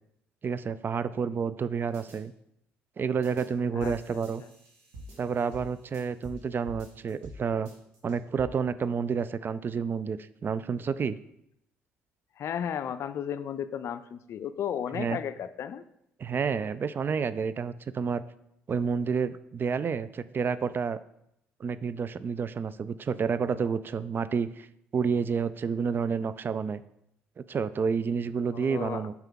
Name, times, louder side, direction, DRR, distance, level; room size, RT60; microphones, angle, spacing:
voice 1, 0.4-2.3 3.0-4.4 5.2-7.7 8.0-11.2 14.9-15.2 16.2-18.2 18.7-21.0 21.6-24.7 24.9-26.8 27.5-29.1, right 6 dB, 40° right, 15 dB, 0.3 m, -29 dB
sound 1, 1.9-2.2 3.2-3.5 3.8-6.4 6.6-7.4 7.6-8.4, right 1 dB, 75° right, 1.8 m, -47 dB
voice 2, 3.7-4.5 12.4-15.8 28.5-29.1, left 8 dB, 55° left, 13 dB, 0.4 m, -34 dB
5.9 x 5.5 x 3.7 m, 0.78 s
hypercardioid pair, 55°, 6 cm